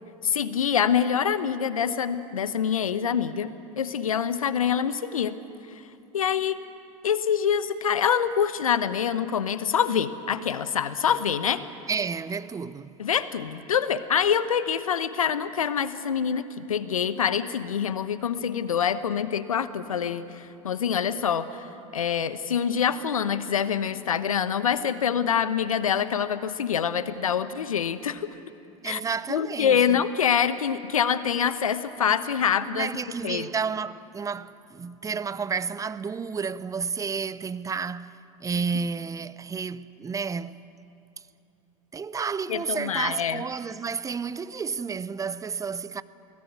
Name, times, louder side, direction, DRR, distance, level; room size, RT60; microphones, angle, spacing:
voice 1, 0.2-5.4 6.1-6.6 7.0-11.6 13.0-21.6 21.9-28.3 28.8-29.0 29.3-32.9 33.2-33.5 42.5-43.4, left 8 dB, 85° left, 1.0 m, -25 dB
voice 2, 11.9-12.9 28.8-30.0 32.7-40.6 41.9-46.0, right 5 dB, 20° right, 0.7 m, -31 dB
22.0 x 17.5 x 9.5 m
hypercardioid pair, 80°, 17 cm